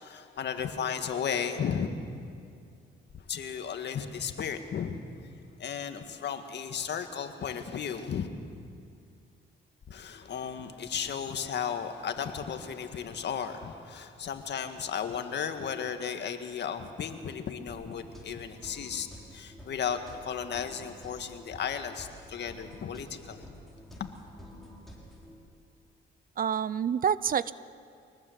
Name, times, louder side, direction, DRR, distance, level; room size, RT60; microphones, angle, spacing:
voice 1, 0.0-1.9 3.2-5.0 5.6-8.3 9.9-23.5 23.9-24.1, left 7 dB, 60° left, 7 dB, 1.9 m, -34 dB
sound 1, 17.7-25.3, equal, ahead, 6.5 m, -49 dB
voice 2, 26.4-27.5, right 8 dB, 45° right, 18 dB, 0.6 m, -27 dB
24.5 x 19.5 x 8.2 m, 2.4 s
cardioid pair, 90°, 20 cm